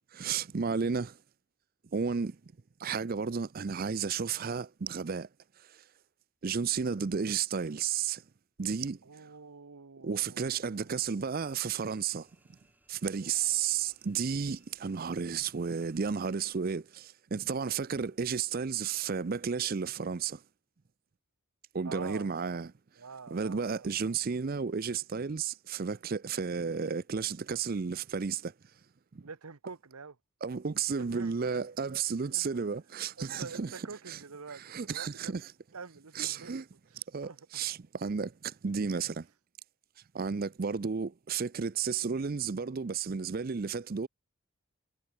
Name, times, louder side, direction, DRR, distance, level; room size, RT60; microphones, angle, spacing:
voice 1, 0.1-1.2 1.9-2.4 2.8-5.3 6.4-8.2 8.6-9.0 10.0-12.3 12.9-20.4 21.7-22.7 23.3-28.5 29.1-29.2 30.4-33.7 34.1-34.2 34.7-35.4 36.2-36.6 37.1-39.3 40.1-44.1, right 6 dB, 40° right, 0.5 m, -32 dB
voice 2, 9.0-11.2 13.2-13.9 17.5-17.9 21.8-22.7 23.0-24.6 29.2-30.2 31.0-31.6 32.3-32.7 33.2-36.6 36.9-37.6, right 4 dB, 85° right, 1.0 m, -48 dB
sound 1, 11.3-16.6, right 1 dB, 10° right, 7.8 m, -69 dB
head